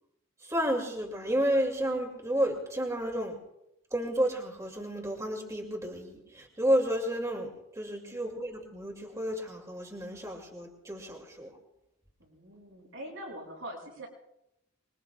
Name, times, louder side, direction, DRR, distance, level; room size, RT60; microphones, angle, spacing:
voice 1, 0.4-3.4 3.9-11.5, equal, 15° right, 1 dB, 2.5 m, -31 dB
voice 2, 12.2-14.1, right 1 dB, 75° right, -1 dB, 6.0 m, -43 dB
26.0 x 21.5 x 2.4 m, 0.85 s
head